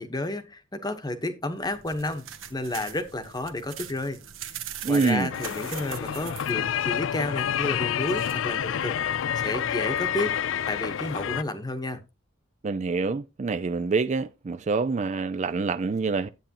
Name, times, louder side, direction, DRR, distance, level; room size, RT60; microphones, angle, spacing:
voice 1, 0.0-4.2 4.9-10.3 10.7-12.0, left 2 dB, 20° left, 1.0 m, -31 dB
sound 1, 1.5-9.4, right 9 dB, 65° right, 1.2 m, -43 dB
voice 2, 4.8-5.3 12.6-16.3, right 4 dB, 35° right, 0.4 m, -26 dB
sound 2, 5.3-11.4, left 9 dB, 65° left, 0.4 m, -28 dB
10.0 x 8.7 x 2.9 m
head